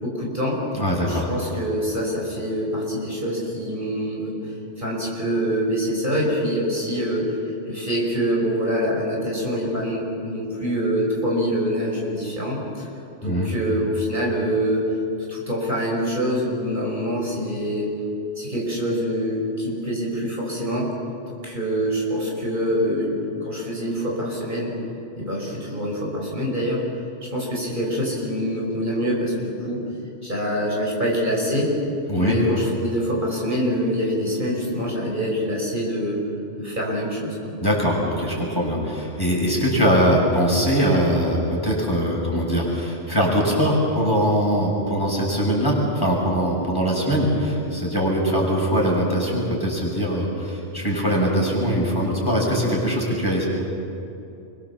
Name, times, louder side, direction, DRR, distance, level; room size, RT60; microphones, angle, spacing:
voice 1, 0.0-0.6 0.9-4.4 4.8-7.4 7.7-12.9 13.2-14.9 15.3-17.9 18.4-20.9 21.4-23.2 23.4-24.7 25.2-26.8 27.2-29.8 30.2-31.7 32.1-36.2 36.6-37.5, equal, 45° right, -3 dB, 6.0 m, -25 dB
voice 2, 0.8-1.3 13.2-13.5 32.1-32.4 37.6-53.5, equal, 20° left, -3 dB, 6.6 m, -22 dB
29.0 x 24.0 x 7.3 m, 2.7 s
omnidirectional pair, 1.2 m